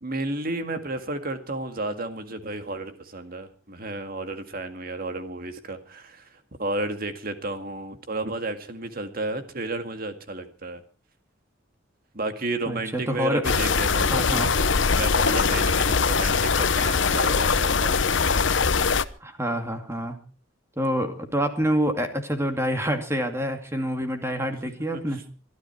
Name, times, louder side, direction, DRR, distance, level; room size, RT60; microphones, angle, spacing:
voice 1, 0.0-6.3 6.6-10.8 12.1-14.7 14.9-18.5 24.9-25.0, right 2 dB, 50° right, 8 dB, 2.0 m, -32 dB
voice 2, 12.7-13.5 14.1-14.5 19.2-20.2 20.8-25.2, equal, 15° right, 5 dB, 2.4 m, -27 dB
sound 1, 13.4-19.1, left 5 dB, 70° left, 0.9 m, -22 dB
23.5 x 13.0 x 4.5 m, 0.38 s
head